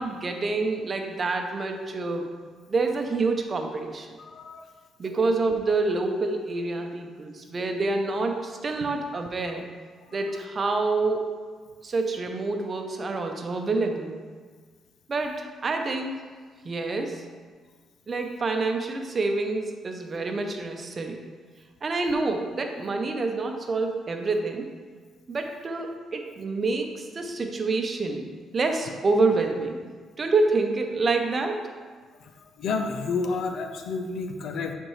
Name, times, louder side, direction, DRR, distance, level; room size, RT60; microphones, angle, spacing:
voice 1, 0.0-2.3 2.7-4.1 5.0-9.6 10.1-11.3 11.8-14.2 15.1-16.2 16.6-17.2 18.1-21.2 21.8-24.7 25.3-28.3 28.5-29.8 30.2-31.6, right 3 dB, 40° right, 4 dB, 0.8 m, -27 dB
voice 2, 4.3-4.7 10.1-10.2 32.6-34.7, left 4 dB, 70° left, 5 dB, 0.6 m, -30 dB
8.9 x 4.5 x 3.2 m, 1.5 s
cardioid pair, 90°, 0 cm